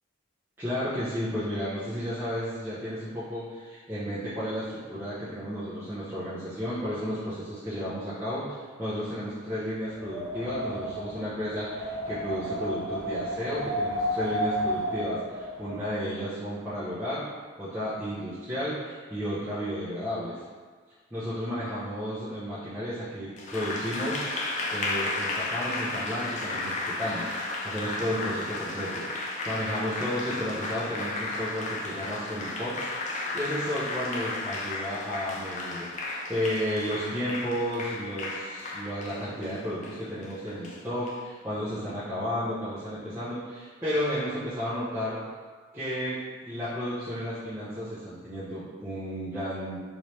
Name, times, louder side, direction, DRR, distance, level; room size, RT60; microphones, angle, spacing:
voice 1, 0.6-17.3 17.6-20.4 21.1-24.2 24.7-27.3 27.6-45.2 45.7-49.8, equal, 10° right, -14 dB, 0.6 m, -33 dB
Wind, 9.9-15.9, equal, 85° right, 0.7 m, -32 dB
Applause, 23.4-41.2, left 2 dB, 35° left, 0.3 m, -34 dB
3.1 x 2.8 x 3.1 m, 1.5 s
head